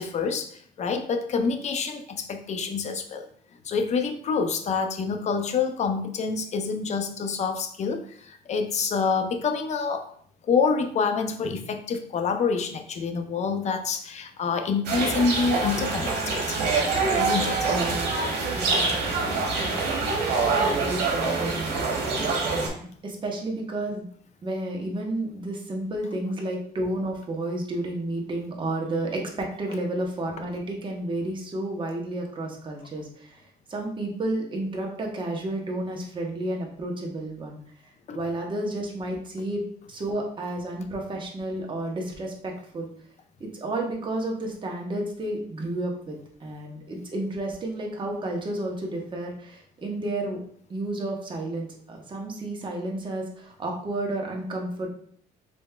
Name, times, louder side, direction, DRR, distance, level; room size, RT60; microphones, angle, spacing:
voice 1, 0.0-3.3 3.6-10.1 10.4-16.6 17.1-17.7 38.1-38.2, left 5 dB, 40° left, 6 dB, 0.6 m, -27 dB
sound 1, 14.8-22.7, right 4 dB, 75° right, 1.5 m, -25 dB
voice 2, 17.6-18.1 18.5-19.7 20.2-24.0 24.4-33.4 33.7-37.6 38.1-39.6 39.9-42.9 43.4-50.4 50.7-54.9, right 1 dB, 30° right, -1 dB, 1.1 m, -31 dB
5.1 x 3.4 x 2.3 m, 0.62 s
cardioid pair, 110°, 17 cm